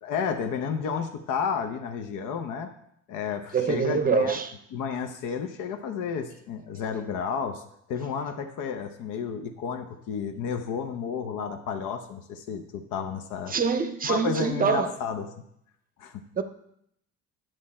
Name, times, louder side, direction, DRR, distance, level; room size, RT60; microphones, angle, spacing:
voice 1, 0.0-2.7 3.1-4.4 4.7-7.6 7.9-13.5 14.0-15.3 16.0-16.2, left 6 dB, 85° left, 0.9 m, -31 dB
voice 2, 3.5-4.5 13.5-14.9 16.4-16.5, right 5 dB, 30° right, 0.6 m, -25 dB
11.0 x 7.7 x 4.3 m
cardioid pair, 165°, 30 cm